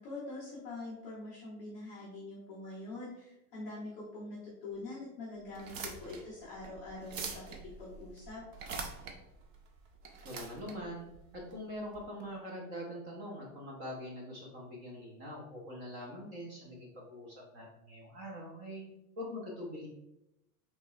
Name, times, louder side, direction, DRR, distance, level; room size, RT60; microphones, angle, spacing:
voice 1, 0.0-8.4, left 2 dB, 15° left, -7 dB, 0.5 m, -44 dB
sound 1, 5.5-12.0, right 4 dB, 55° right, 0.8 m, -45 dB
voice 2, 10.2-11.1 11.3-18.9 19.2-19.9, equal, 25° right, -2 dB, 0.7 m, -43 dB
5.8 x 3.2 x 2.3 m, 0.86 s
supercardioid pair, 170°, 46 cm